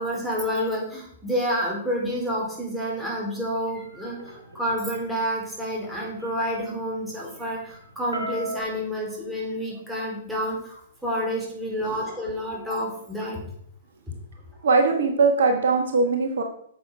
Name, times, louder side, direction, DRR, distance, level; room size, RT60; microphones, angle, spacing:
voice 1, 0.0-13.4, equal, 5° right, -3 dB, 3.7 m, -29 dB
sound 1, 3.6-8.6, equal, 85° right, 2.0 m, -39 dB
voice 2, 14.6-16.4, right 4 dB, 60° right, 4 dB, 1.3 m, -20 dB
9.2 x 7.0 x 4.8 m, 0.67 s
figure-of-eight pair, 110°, 0 cm